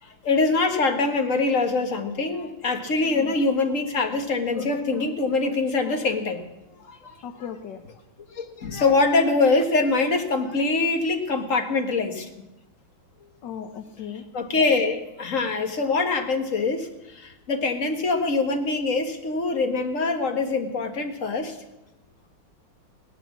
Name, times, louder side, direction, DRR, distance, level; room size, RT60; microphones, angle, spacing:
voice 1, 0.0-6.5 6.8-7.2 8.3-12.3 14.3-21.6, left 3 dB, 40° left, 5 dB, 1.9 m, -24 dB
voice 2, 3.0-3.4 7.2-7.8 13.4-14.2, left 8 dB, 65° left, 6 dB, 1.5 m, -37 dB
17.0 x 11.5 x 7.3 m, 0.95 s
omnidirectional pair, 2.2 m